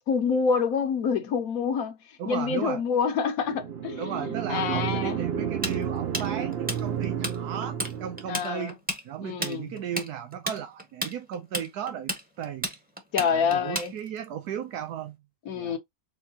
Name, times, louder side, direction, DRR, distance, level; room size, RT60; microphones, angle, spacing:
voice 1, 0.0-5.3 8.3-8.7 9.2-9.7 13.1-13.9 15.5-15.8, left 6 dB, 70° left, 1.3 m, -27 dB
voice 2, 2.2-2.8 4.0-8.8 9.0-12.1 12.4-12.7 13.2-15.2 15.5-15.8, right 9 dB, 90° right, 1.2 m, -35 dB
sound 1, 3.5-8.4, right 8 dB, 50° right, 0.8 m, -31 dB
Tools, 5.6-7.4 7.6-7.9 8.2-14.3, equal, 5° right, 0.9 m, -32 dB
4.6 x 3.8 x 2.8 m
omnidirectional pair, 1.6 m